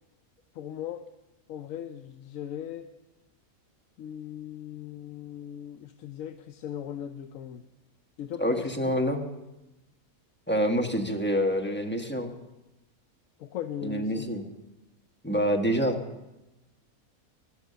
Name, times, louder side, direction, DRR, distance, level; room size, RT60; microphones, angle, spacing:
voice 1, 0.5-1.0 1.5-2.9 4.0-7.6 8.2-9.0 13.4-14.3, left 10 dB, 70° left, 9 dB, 1.0 m, -38 dB
voice 2, 8.4-9.2 10.5-12.3 13.8-14.4 15.2-16.0, equal, 10° left, 2 dB, 1.4 m, -26 dB
14.5 x 12.0 x 6.8 m, 0.98 s
omnidirectional pair, 1.5 m